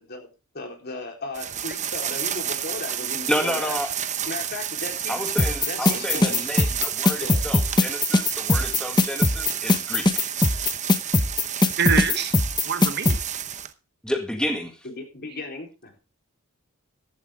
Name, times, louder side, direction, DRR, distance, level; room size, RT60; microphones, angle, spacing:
voice 1, 0.5-3.8 4.3-5.2 5.6-6.5 7.2-7.4 14.8-16.0, left 2 dB, 50° left, 2 dB, 4.0 m, -35 dB
sound 1, 1.3-13.7, right 9 dB, 35° right, 0.8 m, -31 dB
voice 2, 3.3-3.9 5.1-10.1 14.0-14.8, left 1 dB, 5° left, 4 dB, 1.8 m, -30 dB
sound 2, 5.4-13.2, left 2 dB, 20° left, 0.9 m, -19 dB
voice 3, 11.8-12.4 12.6-13.2, right 7 dB, 50° right, 10 dB, 1.2 m, -25 dB
14.5 x 12.0 x 3.6 m, 0.30 s
head